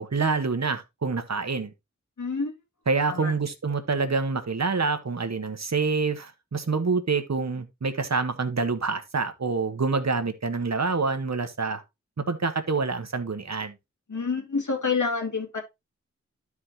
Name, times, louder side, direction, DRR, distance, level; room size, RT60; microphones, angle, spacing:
voice 1, 0.0-1.7 2.9-11.8 12.2-13.7, right 4 dB, 65° right, 1.3 m, -27 dB
voice 2, 2.2-2.5 3.0-3.3 14.1-15.6, left 4 dB, 85° left, 2.3 m, -28 dB
12.5 x 4.8 x 2.8 m
wide cardioid pair, 45°, 29 cm